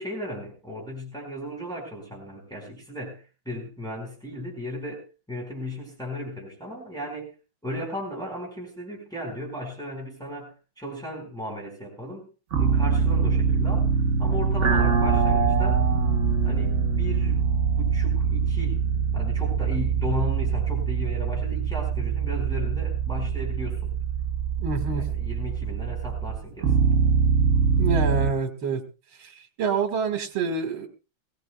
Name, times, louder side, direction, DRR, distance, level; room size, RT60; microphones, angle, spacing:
voice 1, 0.0-7.3 7.6-12.2 12.6-13.9 14.2-15.9 16.4-18.8 19.1-23.9 25.1-26.9, left 1 dB, ahead, -2 dB, 4.9 m, -35 dB
sound 1, 12.5-28.3, right 5 dB, 50° right, 0.9 m, -23 dB
voice 2, 24.6-25.0 27.8-28.8 29.2-30.9, right 5 dB, 70° right, 6 dB, 2.5 m, -27 dB
21.0 x 17.0 x 2.3 m, 0.32 s
omnidirectional pair, 2.3 m